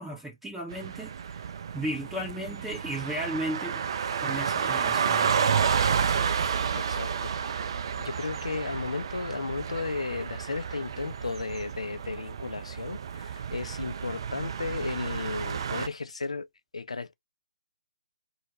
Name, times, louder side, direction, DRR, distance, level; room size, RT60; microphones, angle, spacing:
voice 1, 0.0-1.4 1.7-3.8 4.2-5.5, right 1 dB, 5° right, 0.6 m, -35 dB
sound 1, 0.7-15.9, right 7 dB, 45° right, 0.3 m, -30 dB
voice 2, 6.7-7.3 8.0-16.5 16.7-17.1, left 4 dB, 70° left, 0.4 m, -34 dB
2.3 x 2.1 x 2.7 m
figure-of-eight pair, 135°, 3 cm